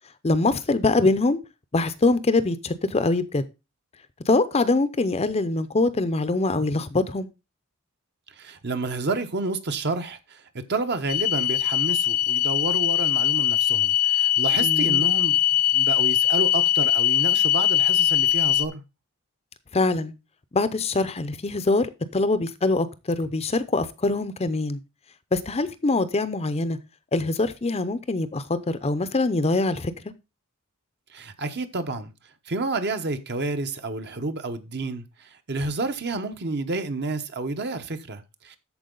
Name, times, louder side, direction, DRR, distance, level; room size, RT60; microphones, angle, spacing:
voice 1, 0.2-1.4 1.7-3.4 4.3-7.3 14.6-15.0 19.7-20.1 20.5-21.9 22.1-24.8 25.3-26.8 27.1-29.9, left 2 dB, 30° left, 0.6 m, -23 dB
voice 2, 8.4-15.4 15.7-18.8 31.1-32.1 32.5-38.6, right 3 dB, 50° right, 1.0 m, -30 dB
sound 1, 11.1-18.7, left 12 dB, 85° left, 0.7 m, -21 dB
13.0 x 4.6 x 3.8 m
head